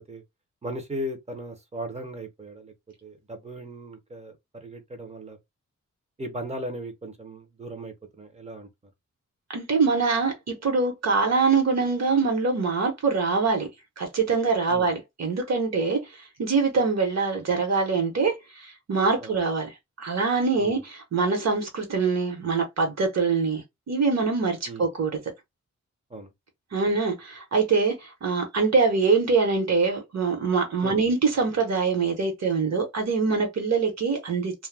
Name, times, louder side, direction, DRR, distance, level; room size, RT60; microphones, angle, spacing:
voice 1, 0.6-2.7 3.0-4.3 4.6-5.4 6.2-8.7 14.7-14.9 19.2-19.4 20.6-20.8 24.7-24.8 26.1-26.3 30.8-31.0, right 1 dB, 20° right, 0.6 m, -37 dB
voice 2, 9.5-13.7 14.0-16.0 16.4-19.7 20.0-25.2 26.7-34.5, right 4 dB, 60° right, 1.0 m, -24 dB
2.2 x 2.1 x 3.3 m
wide cardioid pair, 170°, 30 cm